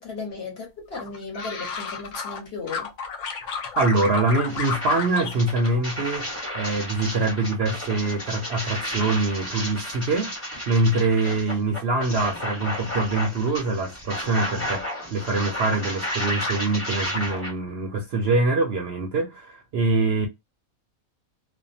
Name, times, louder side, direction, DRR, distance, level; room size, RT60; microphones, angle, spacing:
voice 1, 0.0-2.9, left 4 dB, 50° left, 1.3 m, -35 dB
sound 1, 0.9-2.4 2.7-5.4 5.7-6.4 6.7-7.2, left 5 dB, 70° left, 1.0 m, -32 dB
voice 2, 3.4-20.3, right 3 dB, 60° right, 0.7 m, -24 dB
sound 2, 3.9-4.0 4.5-17.5, left 1 dB, 10° left, 1.1 m, -32 dB
2.6 x 2.2 x 2.6 m
omnidirectional pair, 1.4 m